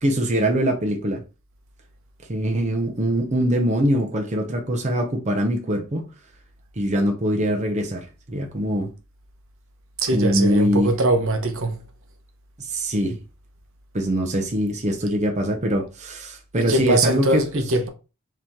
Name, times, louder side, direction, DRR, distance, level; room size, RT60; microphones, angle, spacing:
voice 1, 0.0-1.2 2.3-6.1 6.8-8.9 10.1-10.9 12.6-13.2 13.9-17.6, equal, 30° right, 0.8 m, -23 dB
voice 2, 10.0-11.8 16.5-17.9, right 2 dB, 65° right, 1.0 m, -22 dB
4.8 x 3.0 x 3.6 m
head